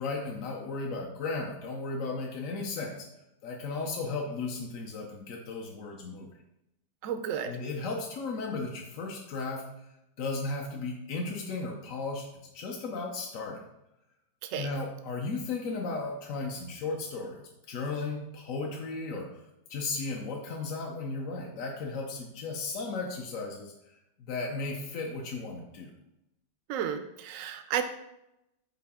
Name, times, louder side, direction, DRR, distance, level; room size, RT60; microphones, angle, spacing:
voice 1, 0.0-3.0 3.4-6.3 7.5-9.6 10.2-12.3 12.5-13.6 14.6-17.4 17.7-19.3 19.7-23.7 24.3-25.9, left 3 dB, 60° left, -1 dB, 1.0 m, -35 dB
voice 2, 7.0-7.5 14.4-14.7 26.7-27.8, right 9 dB, 70° right, 8 dB, 0.8 m, -32 dB
5.8 x 4.6 x 3.6 m, 0.86 s
omnidirectional pair, 1.9 m